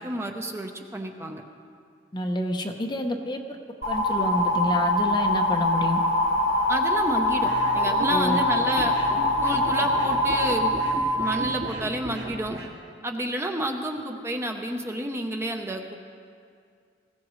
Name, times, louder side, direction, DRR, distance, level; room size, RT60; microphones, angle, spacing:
voice 1, 0.0-1.4 6.7-8.9 9.4-10.7 11.2-12.6 13.0-16.0, right 1 dB, 15° right, 3 dB, 0.8 m, -30 dB
voice 2, 2.1-3.6 3.9-6.0 8.1-8.4 8.8-8.9, left 1 dB, 25° left, 3 dB, 0.9 m, -28 dB
sound 1, 3.8-11.2, left 1 dB, 65° left, 4.2 m, -23 dB
sound 2, 7.4-12.7, right 1 dB, 75° right, 2.1 m, -36 dB
20.0 x 16.0 x 3.2 m, 2.3 s
head